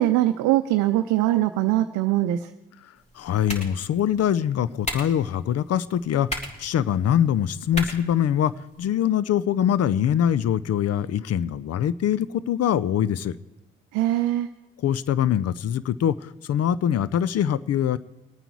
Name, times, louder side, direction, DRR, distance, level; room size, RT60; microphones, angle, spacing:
voice 1, 0.0-2.5 13.9-14.5, right 14 dB, 75° right, 7 dB, 0.6 m, -22 dB
sound 1, 2.9-8.9, equal, 20° left, 3.4 m, -38 dB
voice 2, 3.2-8.5 8.8-13.4 14.8-18.0, left 10 dB, 55° left, 18 dB, 0.6 m, -23 dB
21.5 x 9.1 x 4.7 m, 1.0 s
hypercardioid pair, 45°, 30 cm